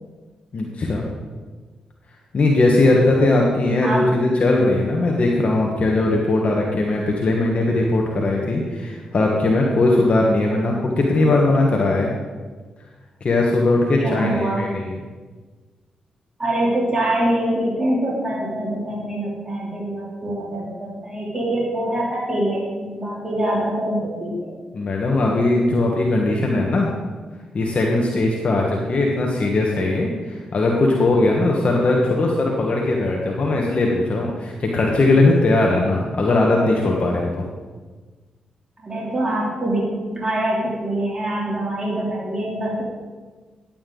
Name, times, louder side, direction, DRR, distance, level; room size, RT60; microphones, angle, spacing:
voice 1, 0.5-1.0 2.3-12.1 13.2-14.9 24.7-26.9 27.5-37.5, left 2 dB, 55° left, -1 dB, 1.4 m, -19 dB
voice 2, 14.0-14.6 16.4-24.5 38.8-39.8 40.1-42.8, right 1 dB, 30° right, -5 dB, 3.2 m, -24 dB
10.5 x 8.8 x 3.9 m, 1.4 s
supercardioid pair, 50°, 3 cm